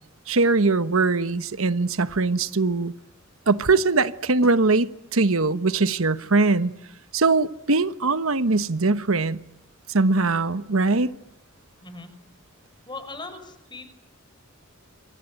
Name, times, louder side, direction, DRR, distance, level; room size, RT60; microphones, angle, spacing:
voice 1, 0.3-2.9 3.5-6.7 7.1-9.4 9.9-11.1, right 3 dB, 85° right, 1.2 m, -21 dB
voice 2, 12.9-13.8, left 3 dB, 20° left, 5.3 m, -38 dB
26.5 x 24.5 x 9.1 m
head